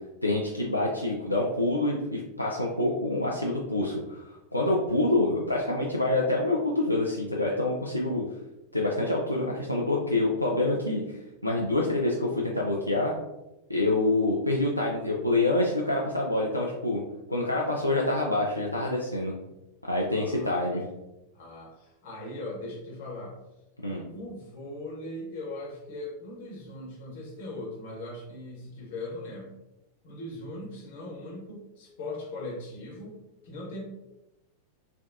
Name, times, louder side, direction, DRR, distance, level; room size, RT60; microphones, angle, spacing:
voice 1, 0.2-8.2 8.7-11.0 11.4-13.1 13.7-17.0 17.3-19.3 19.9-20.8 23.8-24.0, left 2 dB, 90° left, -3 dB, 0.3 m, -26 dB
voice 2, 20.1-20.7 21.3-23.4 24.1-29.6 30.0-33.8, left 2 dB, 55° left, -2 dB, 1.0 m, -39 dB
3.4 x 2.2 x 2.6 m, 0.95 s
figure-of-eight pair, 90°, 0 cm